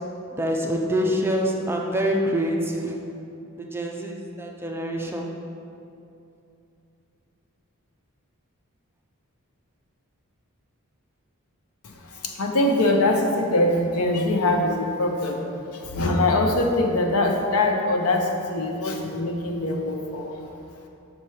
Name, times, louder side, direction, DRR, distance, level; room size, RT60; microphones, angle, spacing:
voice 1, 0.3-3.0 3.6-5.3, equal, 10° right, 0 dB, 0.5 m, -26 dB
voice 2, 11.8-15.5 15.7-20.5, left 2 dB, 80° left, 2 dB, 0.7 m, -23 dB
5.9 x 4.4 x 4.8 m, 2.7 s
head